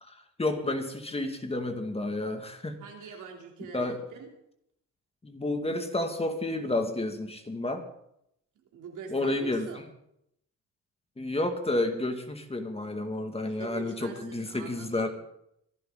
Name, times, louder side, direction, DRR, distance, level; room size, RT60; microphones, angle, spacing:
voice 1, 0.0-2.8 3.7-4.0 5.2-7.8 9.1-9.7 11.2-15.1, left 2 dB, 20° left, 6 dB, 2.1 m, -30 dB
voice 2, 2.8-4.3 8.5-9.8 13.4-15.1, right 5 dB, 80° right, 1 dB, 3.2 m, -44 dB
24.0 x 11.5 x 3.8 m, 0.76 s
cardioid pair, 90°, 30 cm